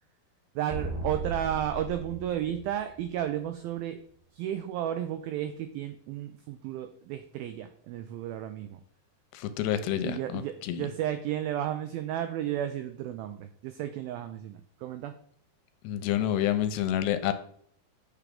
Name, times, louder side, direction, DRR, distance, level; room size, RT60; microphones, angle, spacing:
voice 1, 0.6-4.0 4.3-8.8 10.0-15.2, right 11 dB, 90° right, 9 dB, 2.1 m, -33 dB
sound 1, 0.7-3.4, right 2 dB, 55° right, 3.3 m, -37 dB
voice 2, 9.3-10.9 15.8-17.3, left 11 dB, 85° left, 10 dB, 2.7 m, -28 dB
8.4 x 6.8 x 3.7 m, 0.63 s
omnidirectional pair, 4.9 m